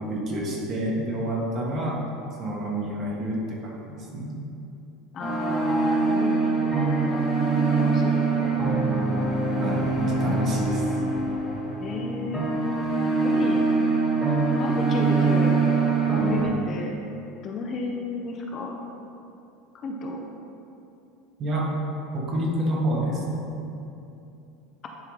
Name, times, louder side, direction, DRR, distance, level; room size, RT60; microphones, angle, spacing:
voice 1, 0.0-2.0 2.4-4.4 9.5-10.9 21.4-21.7 22.1-23.6, right 1 dB, 35° right, -2 dB, 1.2 m, -28 dB
voice 2, 5.1-7.3 7.6-8.5 11.8-12.5 13.2-13.7 14.6-15.6 16.2-17.0 17.4-18.8 19.7-20.2, left 3 dB, 30° left, 1 dB, 0.5 m, -32 dB
sound 1, 5.2-16.5, right 3 dB, ahead, 1.4 m, -23 dB
10.5 x 3.7 x 3.2 m, 2.8 s
supercardioid pair, 155°, 0 cm